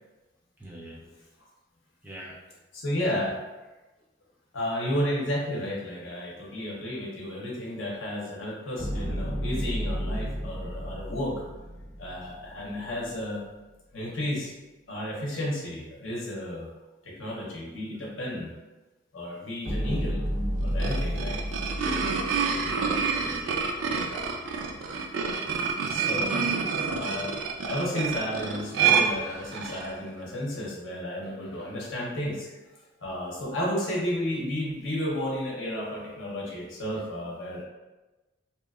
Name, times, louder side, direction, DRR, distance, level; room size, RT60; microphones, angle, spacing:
voice 1, 0.6-1.1 2.0-2.5 22.6-24.2, equal, 10° right, -5 dB, 0.4 m, -44 dB
voice 2, 2.7-3.4 4.5-11.4 12.0-13.4 13.9-14.5 14.9-16.7 17.0-18.5 19.1-20.3 20.6-21.4 25.8-26.4 26.9-27.3 27.7-32.5 33.0-37.6, left 1 dB, 75° left, -4 dB, 0.7 m, -32 dB
sound 1, 8.8-13.1 19.6-23.4, equal, 55° right, 1.2 m, -32 dB
sound 2, 20.6-29.9, right 6 dB, 80° right, 0.3 m, -28 dB
2.8 x 2.2 x 2.3 m, 1.1 s
head